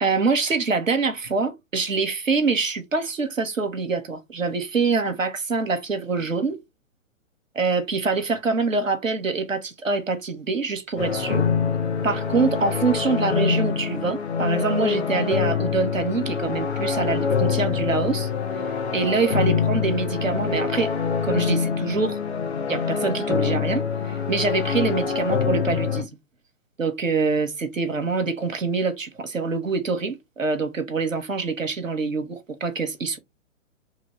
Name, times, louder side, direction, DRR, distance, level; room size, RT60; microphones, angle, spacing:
voice 1, 0.0-6.6 7.5-11.5 12.0-18.3 18.6-20.9 21.2-22.2 22.7-26.1 26.8-33.2, right 4 dB, 85° right, 0.8 m, -25 dB
sound 1, 11.0-26.0, left 6 dB, 60° left, 0.9 m, -25 dB
2.9 x 2.9 x 2.8 m
figure-of-eight pair, 120°, 38 cm